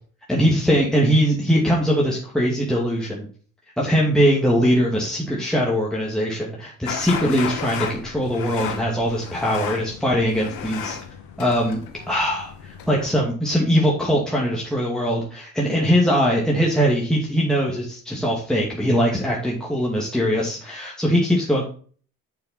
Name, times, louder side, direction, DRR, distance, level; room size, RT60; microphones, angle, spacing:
voice 1, 0.3-3.3 3.8-11.0 11.4-11.8 12.1-21.6, equal, ahead, -4 dB, 2.4 m, -21 dB
sound 1, 6.9-13.1, left 7 dB, 70° left, 1.4 m, -33 dB
7.0 x 6.5 x 4.2 m, 0.43 s
hypercardioid pair, 50°, 38 cm